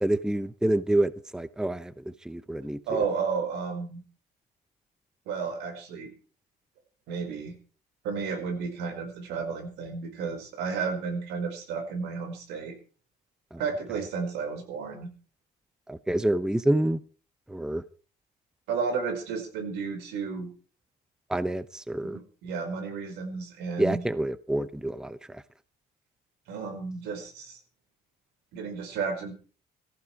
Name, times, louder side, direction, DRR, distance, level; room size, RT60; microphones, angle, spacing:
voice 1, 0.0-3.0 13.5-13.6 15.9-17.0 17.5-17.8 21.3-22.2 23.8-25.4, right 1 dB, 5° right, 0.8 m, -28 dB
voice 2, 2.9-4.0 5.3-6.1 7.1-7.5 8.0-12.7 13.6-15.1 18.7-20.5 22.0-24.0 26.5-27.6 28.5-29.3, right 5 dB, 90° right, 5.2 m, -32 dB
17.5 x 14.5 x 4.8 m
cardioid pair, 110°, 17 cm